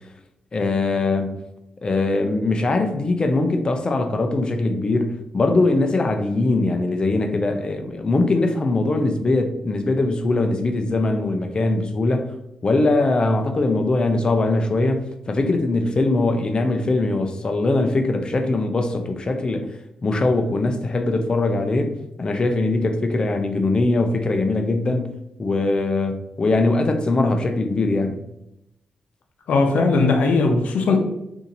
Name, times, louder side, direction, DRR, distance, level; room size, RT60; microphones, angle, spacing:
voice 1, 0.5-1.4 1.8-12.3 12.6-19.7 20.0-21.9 22.2-25.1 25.4-28.2, left 2 dB, 35° left, 0.5 m, -21 dB
voice 2, 29.5-31.0, left 3 dB, 75° left, 0.6 m, -18 dB
2.8 x 2.6 x 3.9 m
cardioid pair, 75°, 2 cm